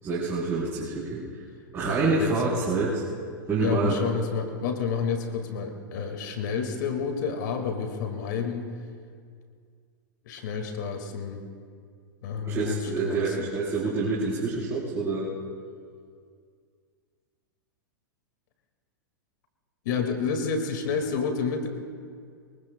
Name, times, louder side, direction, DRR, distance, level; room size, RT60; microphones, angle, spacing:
voice 1, 0.0-1.4 1.7-3.0 3.5-3.9 12.4-15.3, right 3 dB, 25° right, -7 dB, 4.2 m, -27 dB
voice 2, 1.8-2.3 3.6-8.7 10.2-11.4 12.2-13.5 19.8-21.7, left 5 dB, 65° left, 5 dB, 2.1 m, -30 dB
26.5 x 23.0 x 2.3 m, 2.1 s
hypercardioid pair, 120°, 11 cm